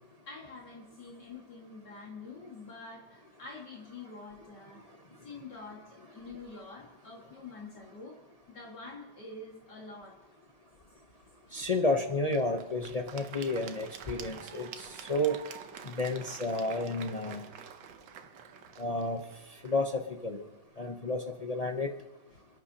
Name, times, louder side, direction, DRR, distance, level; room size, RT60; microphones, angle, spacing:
voice 1, 0.3-4.8 5.2-8.2 8.5-10.4 16.2-16.3 22.3-22.4, left 3 dB, 70° left, -3 dB, 2.5 m, -47 dB
voice 2, 11.5-15.4 15.8-17.5 18.8-20.4 20.8-21.9, left 2 dB, 45° left, 2 dB, 0.5 m, -31 dB
Applause / Crowd, 11.6-20.7, right 8 dB, 85° right, 1.5 m, -48 dB
27.5 x 11.0 x 2.8 m, 1.1 s
omnidirectional pair, 1.9 m